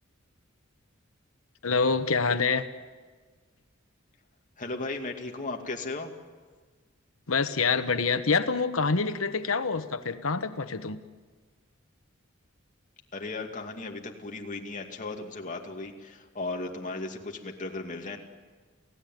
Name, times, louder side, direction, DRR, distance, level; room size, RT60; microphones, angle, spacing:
voice 1, 1.6-2.6 7.3-11.0, left 4 dB, 80° left, 10 dB, 1.1 m, -26 dB
voice 2, 4.6-6.1 13.1-18.2, left 3 dB, 40° left, 2 dB, 2.6 m, -36 dB
29.0 x 16.0 x 9.4 m, 1.4 s
head